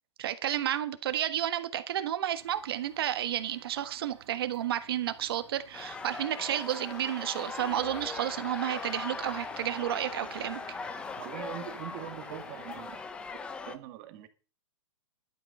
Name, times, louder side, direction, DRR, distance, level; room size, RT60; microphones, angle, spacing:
voice 1, 0.2-10.6, right 11 dB, 50° right, 1.5 m, -31 dB
sound 1, 2.4-6.2 6.5-13.0, right 8 dB, 70° right, 2.9 m, -54 dB
sound 2, 5.7-13.8, left 4 dB, 5° left, 0.6 m, -40 dB
voice 2, 11.2-12.9 13.7-14.3, right 13 dB, 30° right, 1.8 m, -42 dB
13.5 x 11.5 x 5.4 m
hypercardioid pair, 165°, 16 cm